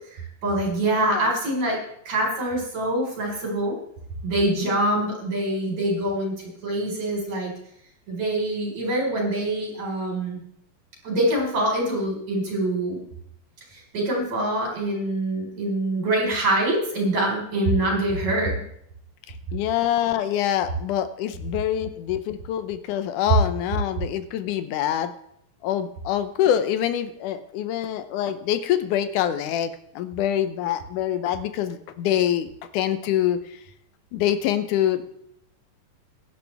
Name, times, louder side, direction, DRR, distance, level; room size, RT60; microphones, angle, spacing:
voice 1, 0.1-1.8 2.1-3.7 4.2-6.4 6.6-7.5 8.1-10.4 11.0-13.0 13.7-18.6, right 1 dB, 50° right, -2 dB, 6.0 m, -25 dB
voice 2, 0.8-1.2 19.5-25.1 25.6-33.4 34.1-35.1, left 11 dB, 75° left, 11 dB, 2.1 m, -25 dB
16.0 x 11.5 x 3.5 m, 0.72 s
omnidirectional pair, 4.0 m